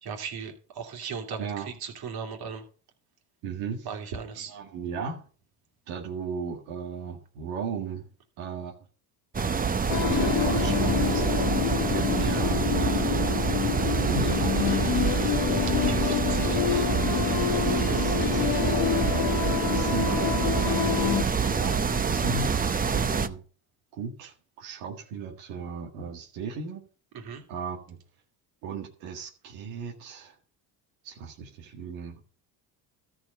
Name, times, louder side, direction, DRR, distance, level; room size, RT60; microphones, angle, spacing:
voice 1, 0.0-2.6 3.8-4.5 15.7-16.9 17.5-18.5 27.1-27.4, right 6 dB, 50° right, 2.8 m, -38 dB
voice 2, 1.4-1.7 3.4-4.0 4.4-5.2 5.9-8.1 8.4-8.7 10.0-13.3 14.0-15.1 15.9-16.5 17.8-19.0 19.7-20.9 21.5-21.8 22.1-23.4 23.9-26.8 27.5-28.0 28.6-30.4 31.0-32.2, right 5 dB, 80° right, 1.9 m, -36 dB
sound 1, 9.3-23.3, right 6 dB, 20° right, 0.7 m, -26 dB
sound 2, 9.9-21.2, left 12 dB, 50° left, 0.8 m, -27 dB
13.5 x 4.9 x 5.5 m
supercardioid pair, 85°, 47 cm